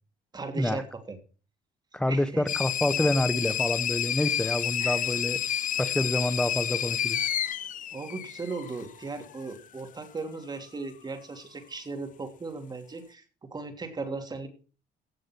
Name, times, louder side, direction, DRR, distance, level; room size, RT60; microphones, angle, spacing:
voice 1, 0.3-1.2 2.1-2.4 4.8-5.1 7.4-7.5 7.9-14.5, right 3 dB, 25° right, 3.2 m, -37 dB
voice 2, 1.9-5.4 5.8-7.2, left 1 dB, 5° left, 1.3 m, -27 dB
sound 1, 2.5-8.9, left 10 dB, 50° left, 1.0 m, -30 dB
16.5 x 6.4 x 6.2 m
cardioid pair, 110°, 17 cm